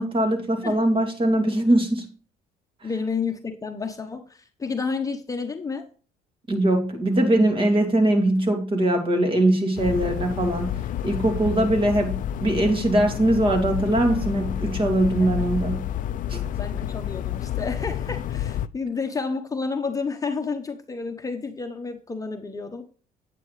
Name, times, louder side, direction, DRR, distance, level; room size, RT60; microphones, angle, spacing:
voice 1, 0.0-2.1 6.5-10.7 11.0-15.8 16.3-16.4, right 1 dB, 30° right, 4 dB, 2.5 m, -21 dB
voice 2, 2.8-5.8 15.2-15.5 16.6-22.8, left 4 dB, 20° left, 4 dB, 1.0 m, -30 dB
sound 1, 9.8-18.7, left 11 dB, 50° left, 0.4 m, -30 dB
9.3 x 8.5 x 3.2 m, 0.39 s
cardioid pair, 110°, 17 cm